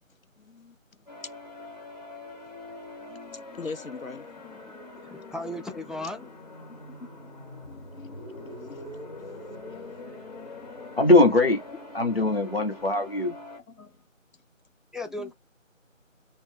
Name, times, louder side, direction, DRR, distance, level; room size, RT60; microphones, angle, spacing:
voice 1, 0.4-0.8 3.0-4.3 6.7-6.8 7.7-9.0 9.3-9.4 9.7-9.8 13.7-14.0 15.2-15.3, left 4 dB, 85° left, 0.7 m, -42 dB
sound 1, 1.1-13.6, left 2 dB, 30° left, 1.4 m, -43 dB
voice 2, 5.1-6.3 14.9-15.3, left 1 dB, ahead, 0.4 m, -36 dB
voice 3, 11.0-11.6 11.9-13.3, left 2 dB, 45° left, 1.1 m, -21 dB
2.8 x 2.4 x 3.4 m
figure-of-eight pair, 170°, 40 cm